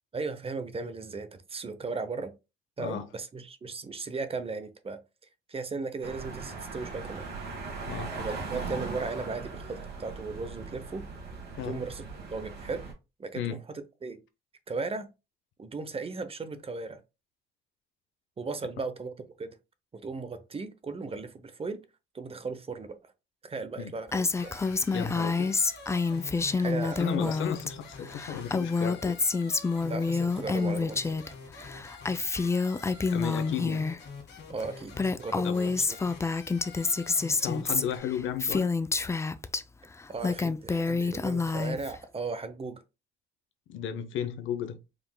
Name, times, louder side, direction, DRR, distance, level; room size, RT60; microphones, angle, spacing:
voice 1, 0.1-2.3 2.8-5.0 5.5-7.3 8.2-11.1 11.6-12.0 12.3-12.9 13.2-13.6 14.0-14.2 14.7-15.1 15.6-17.0 18.4-19.6 19.9-21.8 22.1-23.1 23.4-24.6 26.5-27.4 29.8-31.1 34.5-35.8 40.1-42.8, right 4 dB, 30° right, 0.7 m, -36 dB
sound 1, 6.0-12.9, right 4 dB, 55° right, 2.1 m, -39 dB
Female speech woman speaking, 24.1-27.7 28.0-31.3 31.6-34.0 34.6-34.7 34.9-39.6 40.0-42.0, left 4 dB, 15° left, 0.3 m, -28 dB
sound 2, 24.4-38.0, left 4 dB, 60° left, 1.7 m, -46 dB
voice 2, 24.9-25.5 27.0-29.2 33.1-33.9 35.4-35.6 37.4-38.7 43.7-44.8, left 9 dB, 80° left, 0.7 m, -34 dB
4.9 x 3.5 x 2.2 m
cardioid pair, 90°, 20 cm